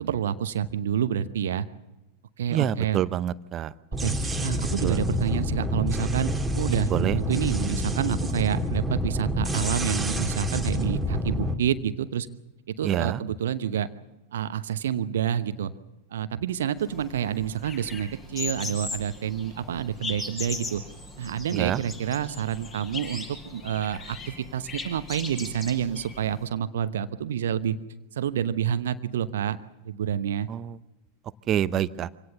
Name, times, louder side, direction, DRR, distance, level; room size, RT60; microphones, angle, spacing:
voice 1, 0.0-1.7 2.4-3.0 4.0-12.3 12.8-13.9 14.3-15.7 16.1-20.8 21.2-27.8 28.2-29.6 29.8-30.5, right 9 dB, 60° right, 12 dB, 1.0 m, -28 dB
voice 2, 2.5-3.7 4.8-5.0 6.9-7.2 12.8-13.2 21.5-21.8 30.5-30.7 31.5-32.1, right 11 dB, 30° right, 17 dB, 0.8 m, -26 dB
sound 1, 3.9-11.5, equal, 5° right, 2.6 m, -28 dB
sound 2, 16.8-26.5, left 3 dB, 25° left, 7.0 m, -38 dB
25.5 x 17.5 x 7.1 m, 1.0 s
figure-of-eight pair, 90°, 0 cm